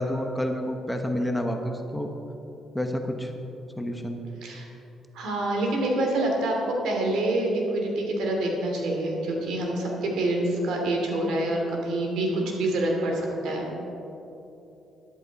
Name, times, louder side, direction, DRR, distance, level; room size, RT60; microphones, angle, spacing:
voice 1, 0.0-2.1 2.7-3.3 3.8-4.2, equal, 5° left, 4 dB, 1.0 m, -29 dB
voice 2, 5.1-13.8, right 1 dB, 80° right, 0 dB, 2.8 m, -26 dB
13.5 x 11.5 x 4.1 m, 3.0 s
cardioid pair, 120°, 0 cm